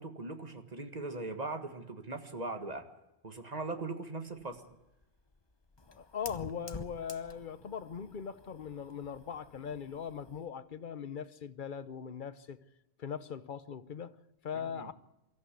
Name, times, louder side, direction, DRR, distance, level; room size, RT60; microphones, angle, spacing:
voice 1, 0.0-2.9 3.2-4.6 14.5-14.9, right 3 dB, 40° right, 1.9 m, -40 dB
Fire, 4.4-10.5, left 3 dB, 25° left, 0.9 m, -51 dB
voice 2, 5.9-12.6 13.0-14.9, left 7 dB, 50° left, 1.0 m, -40 dB
23.5 x 14.0 x 8.3 m
omnidirectional pair, 1.1 m